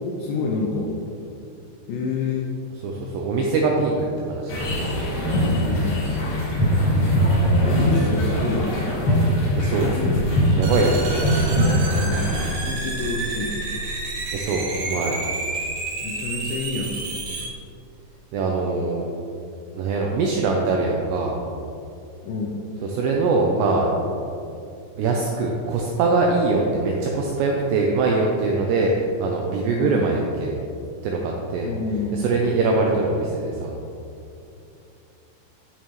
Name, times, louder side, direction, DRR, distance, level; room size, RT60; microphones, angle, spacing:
voice 1, 0.2-0.9 1.9-2.5 5.4-6.2 7.6-8.8 12.0-13.6 16.0-17.1 22.2-22.6 29.8-30.0 31.6-32.5, left 3 dB, 80° left, -1 dB, 2.6 m, -28 dB
voice 2, 2.8-3.9 4.2-4.7 9.6-10.0 10.6-11.3 14.3-15.2 18.3-19.1 19.7-21.3 22.9-23.9 25.0-30.5 31.0-31.7 32.1-33.7, right 3 dB, 85° right, -1 dB, 2.5 m, -22 dB
sound 1, 4.5-12.5, equal, 55° left, 3.3 m, -21 dB
sound 2, 10.6-17.5, right 3 dB, 65° right, 3.5 m, -30 dB
10.5 x 7.2 x 3.1 m, 2.6 s
omnidirectional pair, 5.7 m